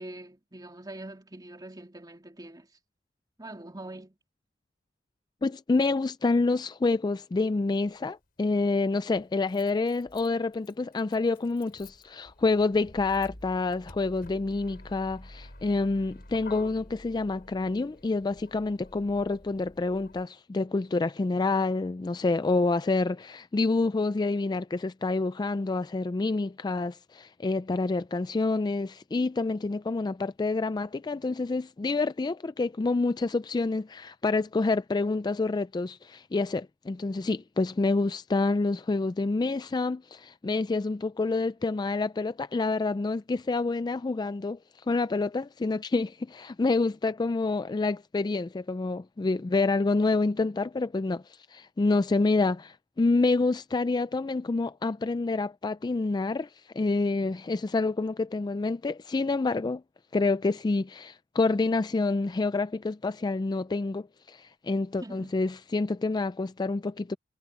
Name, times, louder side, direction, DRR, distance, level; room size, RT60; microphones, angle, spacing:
voice 1, 0.0-2.7 3.4-4.2 65.0-65.3, right 1 dB, 20° right, 2.8 m, -43 dB
voice 2, 5.4-44.6 44.9-59.8 60.1-67.2, left 3 dB, 20° left, 0.3 m, -28 dB
Motor vehicle (road), 7.9-8.0 9.1-20.3, left 1 dB, 50° left, 4.9 m, -49 dB
head